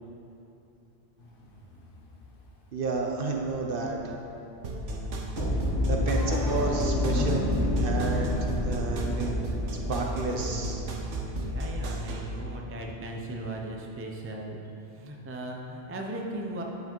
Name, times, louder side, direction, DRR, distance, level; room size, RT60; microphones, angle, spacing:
sound 1, 1.2-2.6 2.9-10.0, left 2 dB, 50° left, 1.0 m, -38 dB
voice 1, 2.7-4.0 5.8-8.3 8.6-9.3 9.9-10.8, right 3 dB, 55° right, 1 dB, 0.8 m, -31 dB
sound 2, 4.6-12.3, right 1 dB, 85° right, 1.2 m, -34 dB
sound 3, 5.3-11.3, left 1 dB, 15° left, 0.9 m, -30 dB
voice 2, 11.3-14.6 14.9-16.6, right 1 dB, 15° right, 0 dB, 0.4 m, -38 dB
9.5 x 4.9 x 4.5 m, 2.8 s
omnidirectional pair, 1.2 m